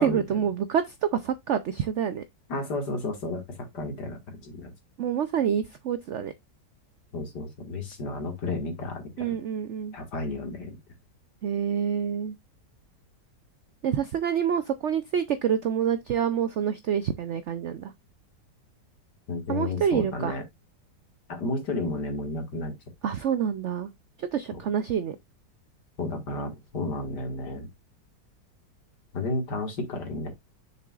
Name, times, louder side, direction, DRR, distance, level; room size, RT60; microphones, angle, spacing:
voice 1, 0.0-2.2 5.0-6.3 9.2-9.9 11.4-12.3 13.8-17.9 19.5-20.4 23.0-23.9 24.2-25.2, right 8 dB, 75° right, 0.6 m, -27 dB
voice 2, 2.5-4.7 7.1-9.4 9.9-10.8 19.3-20.4 21.3-22.7 24.5-24.6 26.0-27.7 29.1-30.3, left 2 dB, 70° left, 2.4 m, -32 dB
6.8 x 6.6 x 2.4 m
omnidirectional pair, 1.9 m